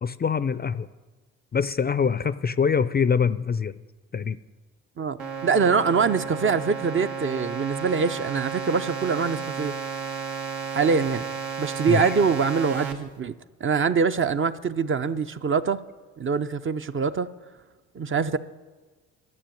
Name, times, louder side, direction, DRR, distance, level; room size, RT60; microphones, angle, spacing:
voice 1, 0.0-0.9 1.5-3.8 4.1-4.4 11.9-12.2, left 6 dB, 25° left, 0.5 m, -24 dB
sound 1, 5.2-12.9, right 6 dB, 80° right, 1.5 m, -33 dB
voice 2, 5.4-9.7 10.7-11.2 11.6-13.3 13.6-15.8 16.2-17.3 18.0-18.4, right 5 dB, 35° right, 0.6 m, -24 dB
12.0 x 6.9 x 8.9 m
hypercardioid pair, 55°, 37 cm